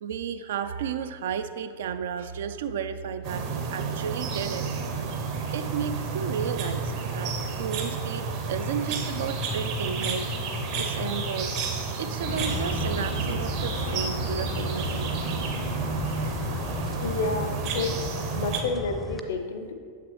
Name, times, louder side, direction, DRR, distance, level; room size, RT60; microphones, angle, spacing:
voice 1, 0.0-4.7 5.5-10.3 10.7-11.5 12.0-15.1, right 7 dB, 60° right, 10 dB, 0.3 m, -33 dB
sound 1, 3.2-18.6, right 4 dB, 45° right, 0.8 m, -31 dB
sound 2, 12.2-19.2, left 2 dB, 10° left, 0.5 m, -35 dB
sound 3, 12.2-18.0, right 1 dB, 80° right, 0.9 m, -37 dB
voice 2, 17.0-18.0 18.3-19.7, left 3 dB, 60° left, 7 dB, 0.5 m, -30 dB
7.3 x 5.8 x 3.1 m, 2.1 s
figure-of-eight pair, 90°, 0 cm